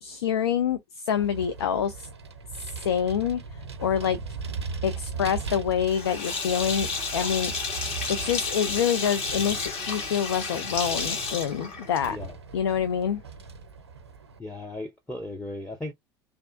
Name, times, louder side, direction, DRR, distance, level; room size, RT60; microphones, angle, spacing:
voice 1, 0.0-2.1 2.8-3.4 3.8-4.2 4.8-6.9 7.1-7.5 8.1-12.2 12.5-13.2, left 8 dB, 75° left, 0.4 m, -26 dB
Vehicle, 1.2-14.4, right 5 dB, 85° right, 0.6 m, -39 dB
Sink (filling or washing), 5.9-12.3, left 4 dB, 50° left, 1.3 m, -31 dB
voice 2, 14.4-15.9, left 2 dB, 5° left, 0.6 m, -36 dB
3.2 x 2.4 x 2.5 m
figure-of-eight pair, 70°, 14 cm